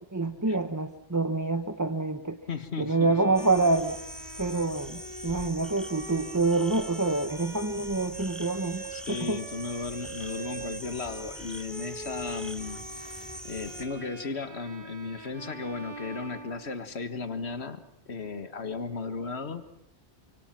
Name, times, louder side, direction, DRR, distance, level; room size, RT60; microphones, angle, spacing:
voice 1, 0.1-2.4 2.8-3.9 4.4-8.9 9.2-9.4, right 3 dB, 15° right, 7 dB, 0.9 m, -27 dB
voice 2, 2.5-3.1 8.9-12.9 13.4-17.8 18.1-19.6, left 4 dB, 70° left, 9 dB, 2.0 m, -35 dB
Bowed string instrument, 2.9-17.1, right 3 dB, 45° right, 2.2 m, -44 dB
sound 1, 3.3-13.8, equal, ahead, 2.6 m, -43 dB
30.0 x 25.5 x 6.0 m, 0.80 s
omnidirectional pair, 1.1 m